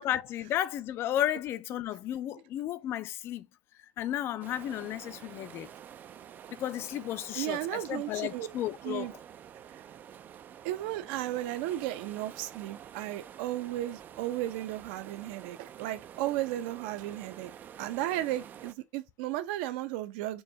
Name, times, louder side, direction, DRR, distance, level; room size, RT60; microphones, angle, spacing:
voice 1, 0.0-3.5 4.0-5.7 6.5-9.1, left 12 dB, 40° left, 0.4 m, -33 dB
sound 1, 4.4-18.7, right 9 dB, 30° right, 0.3 m, -49 dB
voice 2, 7.3-8.5 8.8-9.1 9.7-9.8 10.6-17.5 17.8-20.4, right 14 dB, 65° right, 0.6 m, -34 dB
4.6 x 2.6 x 3.2 m
supercardioid pair, 135°, 6 cm